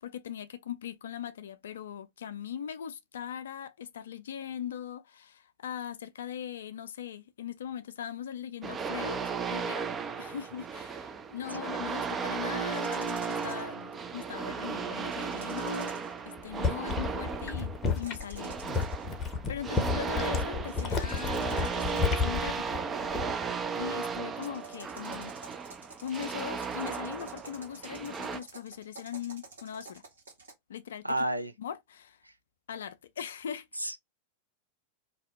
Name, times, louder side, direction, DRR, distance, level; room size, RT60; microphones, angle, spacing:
voice 1, 0.0-9.9 10.2-15.9 16.3-18.6 18.9-19.0 19.5-22.8 23.7-25.3 26.0-30.0 30.7-31.1 31.6-32.2 32.7-33.7, left 9 dB, 65° left, 0.4 m, -40 dB
sound 1, 8.6-28.4, right 5 dB, 20° right, 0.4 m, -35 dB
sound 2, 12.7-13.7 15.2-16.2 17.8-19.1 20.7-22.3 24.3-30.5, right 3 dB, 70° right, 1.0 m, -50 dB
sound 3, 16.4-23.5 23.8-24.2, left 5 dB, 25° left, 0.7 m, -32 dB
voice 2, 31.0-31.5 33.8-34.0, right 1 dB, 90° right, 0.4 m, -30 dB
2.7 x 2.1 x 3.5 m
figure-of-eight pair, 90°, 0 cm